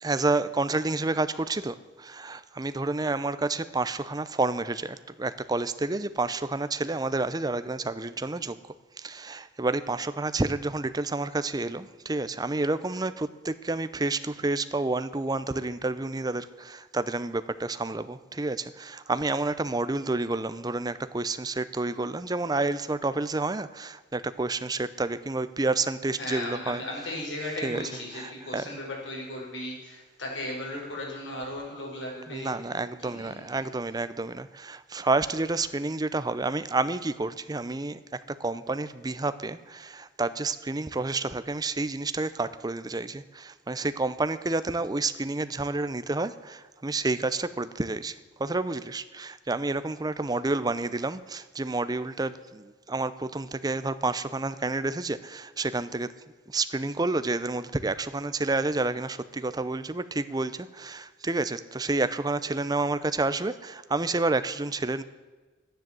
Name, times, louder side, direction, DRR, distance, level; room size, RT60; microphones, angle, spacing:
voice 1, 0.0-8.6 9.0-27.2 27.6-28.8 32.3-38.0 38.4-56.1 56.5-65.0, right 3 dB, 20° right, 13 dB, 0.6 m, -29 dB
voice 2, 26.2-32.5 33.0-33.6, left 1 dB, 85° left, -2 dB, 5.2 m, -36 dB
12.5 x 10.5 x 7.6 m, 1.3 s
head